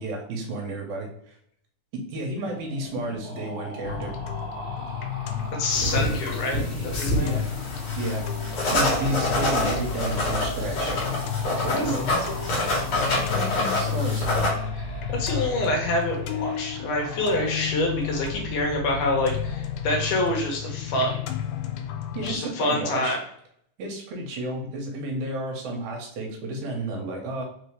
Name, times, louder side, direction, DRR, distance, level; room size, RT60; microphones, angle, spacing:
voice 1, 0.0-1.4 1.9-4.1 7.2-7.4 8.0-11.0 11.6-12.5 12.9-14.3 22.1-23.2 23.8-27.4, right 1 dB, 70° right, 1 dB, 2.0 m, -32 dB
sound 1, 2.4-18.4, equal, 55° right, 0.6 m, -42 dB
sound 2, 3.8-22.4, left 7 dB, 90° left, 2.3 m, -32 dB
voice 2, 5.6-7.4 11.7-11.9 14.7-14.8 15.1-21.2 22.2-23.2, left 1 dB, 75° left, 1 dB, 2.3 m, -26 dB
sound 3, 5.7-14.5, left 1 dB, 55° left, 1.9 m, -27 dB
5.1 x 2.7 x 3.2 m, 0.69 s
omnidirectional pair, 3.9 m